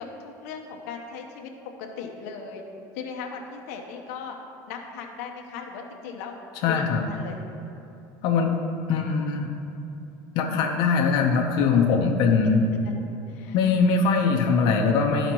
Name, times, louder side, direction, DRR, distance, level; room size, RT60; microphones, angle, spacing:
voice 1, 0.0-1.5 1.8-2.6 2.9-4.4 4.7-6.3 6.7-7.4 12.4-12.5 13.3-13.6, left 5 dB, 90° left, 2 dB, 0.8 m, -38 dB
voice 2, 6.6-7.0 8.2-8.5 8.9-9.5 10.3-12.7 13.5-15.3, left 5 dB, 60° left, 1 dB, 0.8 m, -21 dB
13.5 x 5.0 x 3.0 m, 2.8 s
cardioid pair, 140°, 8 cm